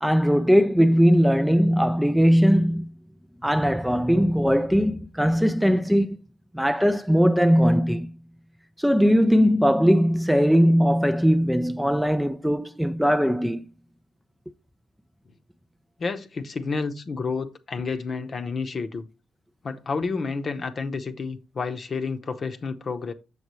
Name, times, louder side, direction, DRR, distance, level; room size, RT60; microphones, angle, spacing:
voice 1, 0.0-2.9 3.4-6.2 6.5-8.1 8.8-13.6, equal, ahead, 0.3 m, -20 dB
voice 2, 16.0-19.1 19.6-23.1, left 4 dB, 40° left, 0.8 m, -30 dB
7.1 x 6.8 x 3.1 m
cardioid pair, 85°, 0 cm